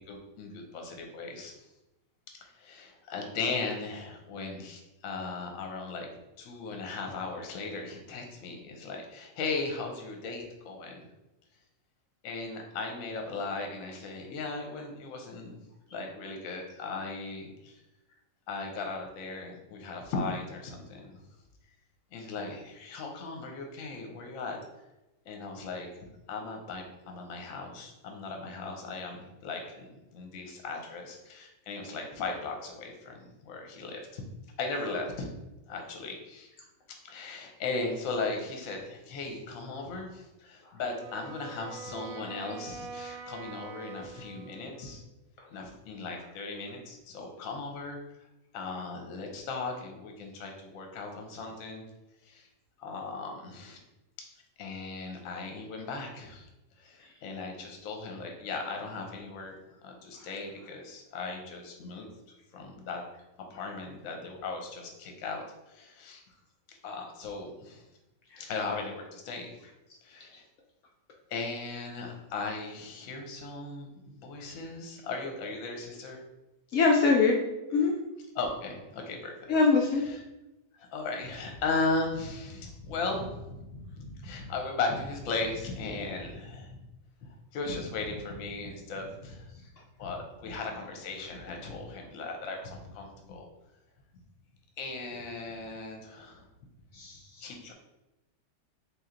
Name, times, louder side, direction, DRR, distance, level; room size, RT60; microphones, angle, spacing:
voice 1, 0.0-1.6 2.4-6.1 6.4-11.1 12.2-15.6 15.9-17.8 18.5-21.2 22.1-24.6 25.3-25.9 26.3-34.2 34.6-35.3 35.7-36.5 37.0-45.0 45.5-48.0 48.5-51.8 52.2-52.5 52.8-53.8 54.2-54.3 54.6-56.5 56.8-63.0 63.5-66.2 66.7-67.8 68.4-69.6 70.0-70.4 71.3-76.2 78.3-79.5 80.1-80.2 80.7-86.8 87.3-89.6 90.0-93.5 94.8-96.5 97.4-97.7, left 3 dB, 60° left, 2 dB, 1.0 m, -37 dB
Wind instrument woodwind instrument, 41.0-45.1, right 5 dB, 70° right, 0.9 m, -45 dB
voice 2, 76.7-77.4 77.7-77.9 79.5-80.0 96.9-97.5, left 4 dB, 80° left, 0 dB, 0.6 m, -23 dB
3.2 x 2.8 x 3.7 m, 0.99 s
omnidirectional pair, 1.8 m